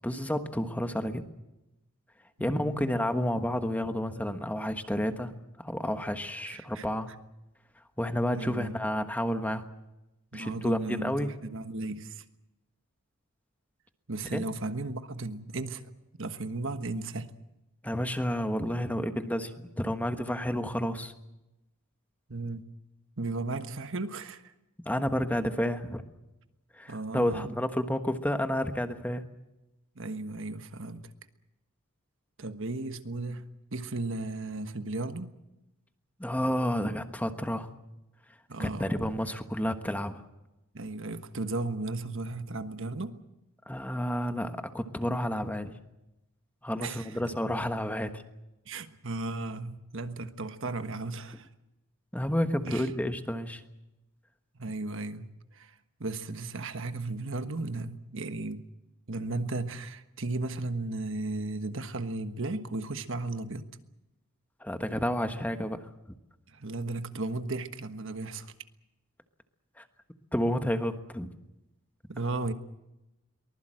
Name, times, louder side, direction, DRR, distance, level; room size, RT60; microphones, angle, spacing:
voice 1, 0.0-1.2 2.4-5.3 5.6-7.1 8.0-9.6 10.3-11.3 14.3-14.4 17.8-21.1 24.8-26.0 26.8-29.2 36.2-37.7 38.6-40.2 43.7-45.7 46.6-48.2 52.1-53.6 64.6-65.9 69.8-69.9 70.3-71.3, equal, 5° left, 1.3 m, -30 dB
voice 2, 2.4-2.8 6.4-6.9 8.3-8.8 10.3-12.2 14.1-15.9 16.2-17.3 22.3-22.7 23.2-24.5 26.9-27.5 29.9-31.1 32.4-35.3 38.5-38.9 40.7-43.2 46.8-47.2 48.6-51.5 52.6-52.9 54.5-55.7 56.0-58.6 59.1-63.7 66.5-68.5 72.1-72.5, right 2 dB, 60° right, 1.4 m, -35 dB
23.5 x 20.0 x 7.7 m
head